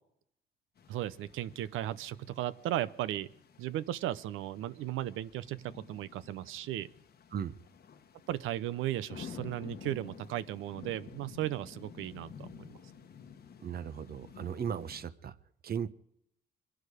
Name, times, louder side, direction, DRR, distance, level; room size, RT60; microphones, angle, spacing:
sound 1, 0.8-15.1, left 7 dB, 55° left, 1.1 m, -51 dB
voice 1, 0.9-3.3 3.6-6.9 8.3-12.8, right 13 dB, 90° right, 16 dB, 0.7 m, -36 dB
voice 2, 13.6-15.3 15.6-15.9, right 8 dB, 50° right, 13 dB, 0.9 m, -37 dB
24.0 x 11.0 x 5.0 m, 0.74 s
cardioid pair, 90°, 20 cm